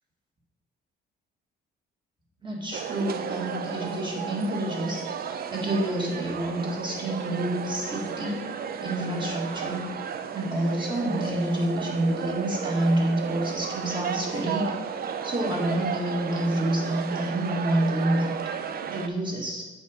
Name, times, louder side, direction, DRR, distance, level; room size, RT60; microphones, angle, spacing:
voice 1, 2.4-8.4 8.8-10.0 10.3-19.6, right 1 dB, 25° right, -2 dB, 1.9 m, -28 dB
sound 1, 2.7-19.1, right 7 dB, 50° right, 0.5 m, -33 dB
8.2 x 3.7 x 5.0 m, 1.2 s
cardioid pair, 90°, 20 cm